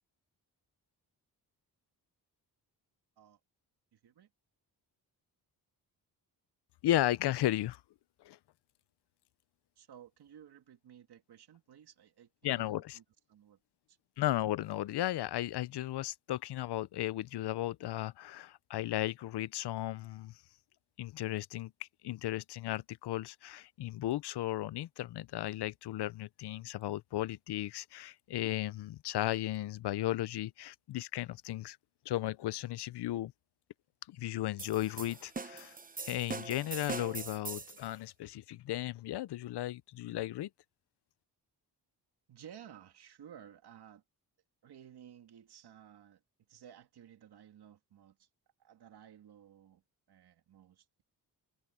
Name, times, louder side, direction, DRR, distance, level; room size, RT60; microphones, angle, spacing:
voice 1, 3.9-4.3 9.8-13.6 13.9-14.0 42.3-44.0 44.6-46.2 46.5-48.3 48.6-51.0, right 9 dB, 75° right, 2.4 m, -56 dB
voice 2, 6.8-7.8 8.2-8.4 12.4-13.0 14.2-20.4 21.0-31.8 32.1-33.3 34.1-35.8 36.1-40.5, left 14 dB, 80° left, 0.6 m, -35 dB
sound 1, 34.6-37.9, right 4 dB, 20° right, 1.0 m, -41 dB
wide cardioid pair, 120°, 40 cm